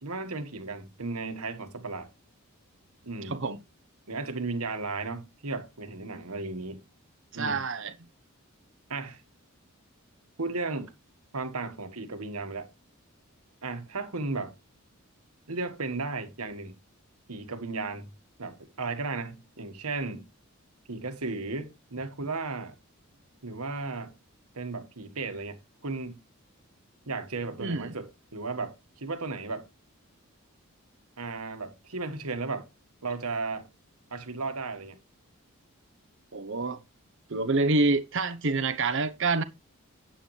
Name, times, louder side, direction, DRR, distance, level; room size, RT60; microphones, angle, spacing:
voice 1, 0.0-2.1 3.0-3.4 4.1-6.8 7.3-7.6 8.9-9.2 10.4-10.9 11.3-12.7 13.6-14.6 15.5-16.7 17.3-18.1 18.4-20.3 20.9-22.8 23.4-24.1 24.6-26.2 27.1-29.7 31.2-32.7 33.0-33.7 34.1-35.0, right 3 dB, 85° right, 1.7 m, -35 dB
voice 2, 3.2-3.6 7.3-7.9 27.6-27.9 36.3-36.8 37.3-39.4, right 3 dB, 55° right, 0.9 m, -27 dB
9.0 x 8.9 x 3.2 m
head